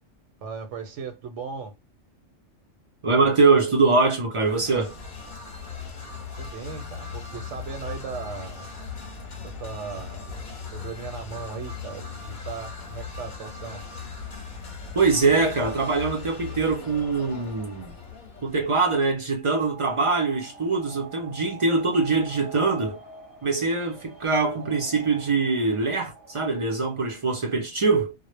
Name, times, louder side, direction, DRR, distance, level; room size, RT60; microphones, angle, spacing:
voice 1, 0.4-1.7 6.4-8.7 9.6-10.2 10.7-13.8, right 5 dB, 80° right, 0.9 m, -37 dB
voice 2, 3.0-4.9 14.9-17.9 18.4-23.0 23.4-28.1, right 4 dB, 50° right, 0.4 m, -23 dB
sound 1, 4.4-19.1, left 5 dB, 50° left, 0.7 m, -39 dB
sound 2, 19.3-27.0, right 4 dB, 20° left, 0.9 m, -45 dB
2.1 x 2.0 x 3.1 m
omnidirectional pair, 1.2 m